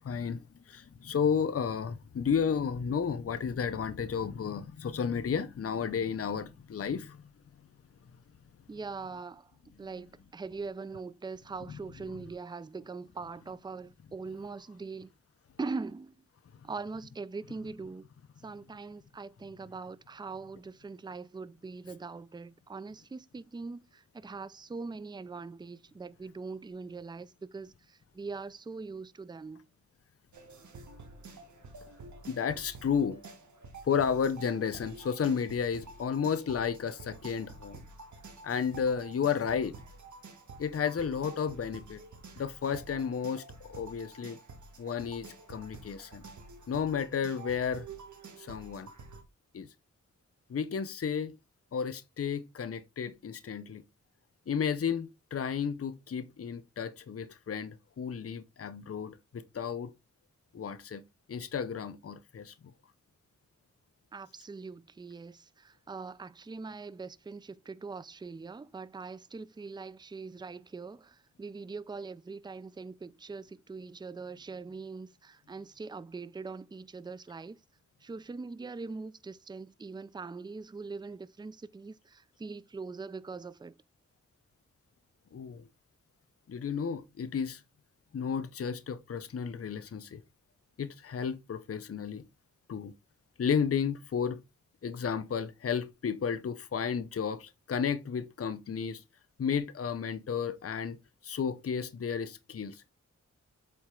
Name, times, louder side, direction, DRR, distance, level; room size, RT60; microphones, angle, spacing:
voice 1, 0.0-0.4 0.7-7.2 32.3-33.2 33.8-37.8 38.4-39.7 40.6-42.0 42.4-44.4 44.8-46.2 46.7-47.9 48.4-48.9 49.5-49.7 50.5-51.3 51.7-53.8 54.5-59.9 60.5-61.0 61.3-62.5 85.3-85.6 86.5-87.6 88.1-90.2 90.8-92.2 92.7-92.9 93.4-94.4 94.8-99.0 99.4-101.0 101.2-102.9, left 7 dB, 50° left, 0.7 m, -32 dB
voice 2, 8.7-9.5 9.8-15.1 15.6-16.1 16.6-18.1 18.4-29.6 64.1-77.6 78.0-83.8, right 4 dB, 15° right, 0.4 m, -42 dB
sound 1, 30.3-49.2, right 3 dB, 75° right, 1.7 m, -49 dB
7.8 x 4.2 x 3.7 m
wide cardioid pair, 85°, 30 cm